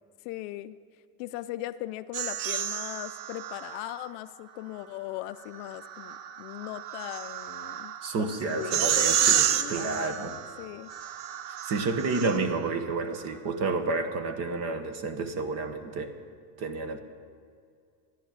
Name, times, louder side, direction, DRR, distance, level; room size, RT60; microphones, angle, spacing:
voice 1, 0.2-0.8 1.2-10.9, left 15 dB, 55° left, 12 dB, 0.5 m, -39 dB
sound 1, 2.1-4.1 5.5-12.7, right 10 dB, 55° right, 0.8 m, -30 dB
voice 2, 8.0-10.4 11.5-16.1 16.6-17.0, right 3 dB, 35° right, 9 dB, 1.1 m, -30 dB
14.0 x 11.0 x 8.8 m, 2.3 s
cardioid pair, 175°, 46 cm